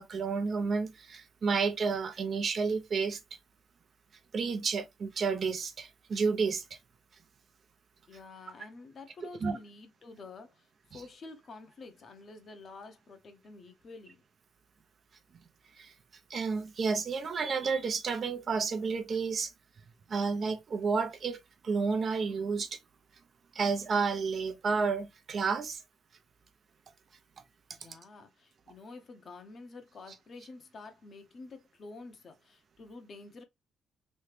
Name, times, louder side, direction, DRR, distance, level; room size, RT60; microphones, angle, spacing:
voice 1, 0.0-3.2 4.3-6.6 9.4-9.6 15.8-15.9 16.3-19.5 20.1-21.4 21.6-22.8 23.5-25.8, right 5 dB, 50° right, 0.7 m, -31 dB
voice 2, 8.1-14.2 27.7-33.4, left 3 dB, 50° left, 0.8 m, -49 dB
3.2 x 2.8 x 3.2 m
cardioid pair, 90°, 0 cm